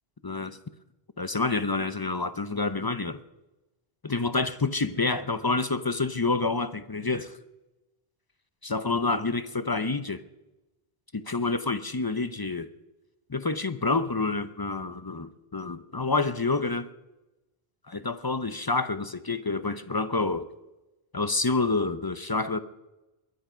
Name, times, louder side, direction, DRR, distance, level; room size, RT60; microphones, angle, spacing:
voice 1, 0.2-0.6 1.2-3.2 4.0-7.3 8.6-10.2 11.1-12.7 13.3-16.9 17.9-20.4 21.1-22.6, left 3 dB, 30° left, 12 dB, 0.5 m, -28 dB
21.5 x 10.5 x 5.6 m, 1.0 s
omnidirectional pair, 1.0 m